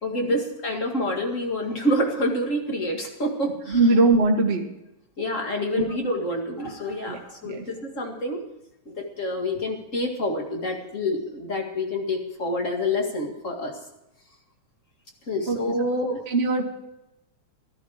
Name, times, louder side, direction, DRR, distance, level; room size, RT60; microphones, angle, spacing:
voice 1, 0.0-3.8 5.2-8.4 8.9-13.8 15.3-16.2, left 1 dB, 30° left, 2 dB, 1.8 m, -27 dB
voice 2, 3.7-4.7 5.7-5.8 7.1-7.2 7.4-7.6 15.5-15.6 16.3-16.6, right 3 dB, 35° right, 1 dB, 1.0 m, -21 dB
14.0 x 13.5 x 4.9 m, 0.89 s
omnidirectional pair, 3.6 m